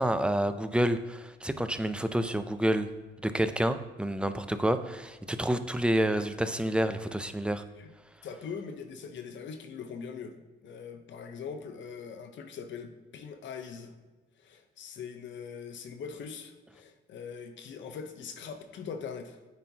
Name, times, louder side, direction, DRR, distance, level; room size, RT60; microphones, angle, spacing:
voice 1, 0.0-2.9 3.2-7.6, right 1 dB, 5° right, 10 dB, 0.4 m, -28 dB
voice 2, 8.2-13.9 14.4-19.4, left 6 dB, 70° left, 7 dB, 0.8 m, -42 dB
9.0 x 4.3 x 2.8 m, 1.3 s
cardioid pair, 90°, 20 cm